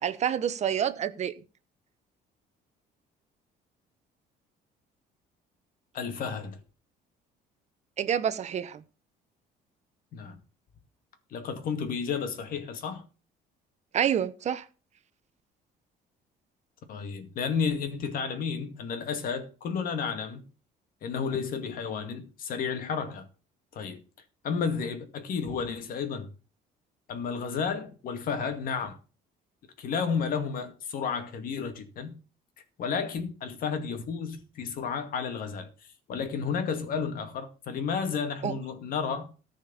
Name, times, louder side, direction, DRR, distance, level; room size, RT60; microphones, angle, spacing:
voice 1, 0.0-1.3 8.0-8.8 13.9-14.6 38.4-38.5, right 9 dB, 45° right, 1.0 m, -28 dB
voice 2, 5.9-6.6 10.1-10.4 11.3-13.0 16.9-20.4 21.0-23.2 23.7-24.0 24.4-26.3 27.1-29.0 29.8-32.2 32.8-35.7 36.1-39.3, left 6 dB, 60° left, 2.3 m, -32 dB
14.5 x 5.3 x 7.0 m
cardioid pair, 130°, 17 cm